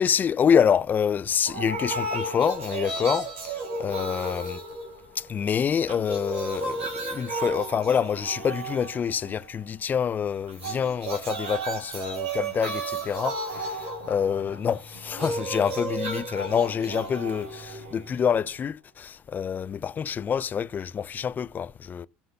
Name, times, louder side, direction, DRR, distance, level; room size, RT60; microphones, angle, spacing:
voice 1, 0.0-4.6 5.2-22.1, left 7 dB, 35° left, 0.5 m, -26 dB
sound 1, 1.5-5.4 5.7-9.5 10.5-18.5, right 2 dB, 80° right, 4.1 m, -33 dB
16.0 x 6.1 x 2.7 m
hypercardioid pair, 75°, 6 cm